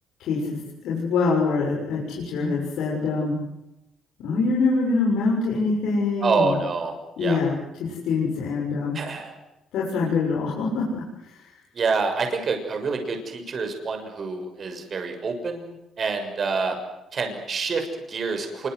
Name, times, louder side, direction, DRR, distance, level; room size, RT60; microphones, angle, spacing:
voice 1, 0.2-3.4 4.2-6.6 7.2-9.0 9.7-11.0 11.3-11.5, left 4 dB, 85° left, -3 dB, 6.9 m, -24 dB
voice 2, 6.2-6.9 7.2-7.4 8.9-9.3 11.7-16.8 17.1-18.7, right 4 dB, 45° right, 5 dB, 6.6 m, -27 dB
27.0 x 24.5 x 8.0 m, 0.90 s
cardioid pair, 90°, 0 cm